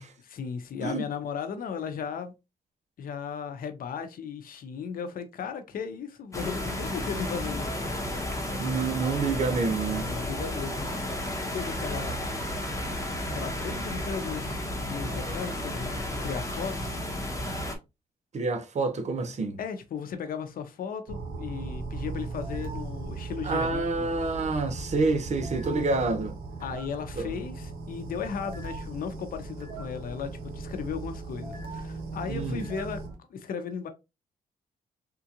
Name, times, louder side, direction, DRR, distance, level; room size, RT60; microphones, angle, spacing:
voice 1, 0.2-2.3 3.0-8.2 10.0-10.9 11.3-12.1 13.3-16.9 19.6-24.1 26.6-33.0 33.3-33.9, left 6 dB, 75° left, 0.7 m, -36 dB
sound 1, 6.3-17.8, left 1 dB, 20° left, 1.0 m, -32 dB
voice 2, 8.6-10.1 18.3-19.6 23.4-26.3 27.2-27.3 32.3-32.7, right 3 dB, 50° right, 0.8 m, -28 dB
sound 2, 21.1-33.1, right 3 dB, 85° right, 1.1 m, -38 dB
3.7 x 2.4 x 2.8 m
cardioid pair, 105°, 15 cm